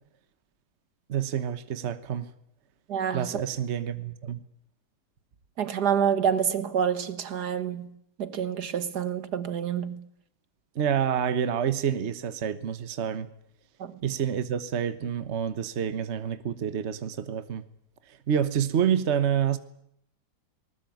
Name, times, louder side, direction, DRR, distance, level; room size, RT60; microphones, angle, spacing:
voice 1, 1.1-2.3 3.1-4.4 10.7-13.3 14.0-17.6 18.3-19.6, right 8 dB, 45° right, 1.3 m, -28 dB
voice 2, 2.9-3.4 5.6-10.1 13.8-14.0, right 8 dB, 75° right, 2.0 m, -28 dB
20.5 x 19.5 x 9.3 m
omnidirectional pair, 1.8 m